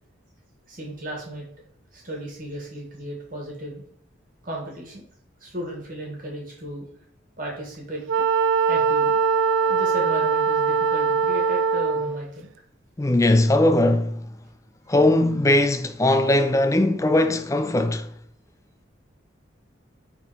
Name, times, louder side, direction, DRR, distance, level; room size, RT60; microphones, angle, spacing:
voice 1, 0.7-1.5 1.9-3.8 4.4-5.0 5.4-6.9 7.4-8.3 8.7-9.2 9.7-12.5, right 1 dB, 45° right, 2.3 m, -35 dB
Wind instrument woodwind instrument, 8.1-12.2, right 5 dB, 80° right, 0.4 m, -21 dB
voice 2, 13.0-14.3 14.9-18.1, left 1 dB, 15° left, 0.4 m, -19 dB
5.5 x 4.3 x 4.4 m
head